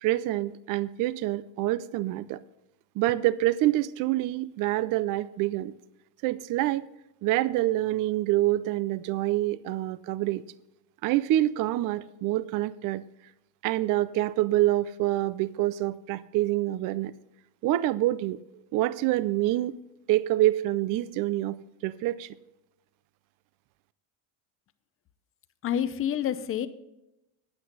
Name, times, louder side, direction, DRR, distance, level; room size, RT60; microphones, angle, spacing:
voice 1, 0.0-2.4 3.0-5.7 6.2-6.9 7.2-10.4 11.0-13.0 13.6-17.1 17.6-18.4 18.7-19.8 20.1-21.6 21.8-22.3, right 15 dB, 45° right, 17 dB, 0.5 m, -26 dB
voice 2, 25.6-26.7, left 10 dB, 30° left, 12 dB, 0.6 m, -28 dB
10.0 x 8.9 x 5.3 m, 0.89 s
cardioid pair, 155°, 45 cm